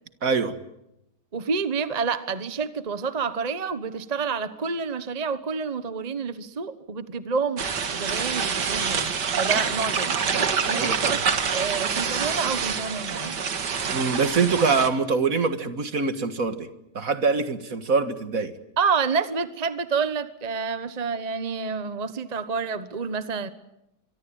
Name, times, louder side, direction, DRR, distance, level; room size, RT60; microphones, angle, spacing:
voice 1, 0.2-0.5 10.7-11.2 13.9-16.7 16.9-18.5, right 4 dB, 55° right, 11 dB, 2.1 m, -24 dB
voice 2, 1.3-7.7 7.9-11.2 11.5-13.4 18.8-23.5, right 5 dB, 25° right, 13 dB, 1.2 m, -28 dB
sound 1, 7.6-14.9, right 6 dB, 90° right, 2.4 m, -26 dB
25.0 x 24.0 x 8.8 m, 0.84 s
omnidirectional pair, 1.8 m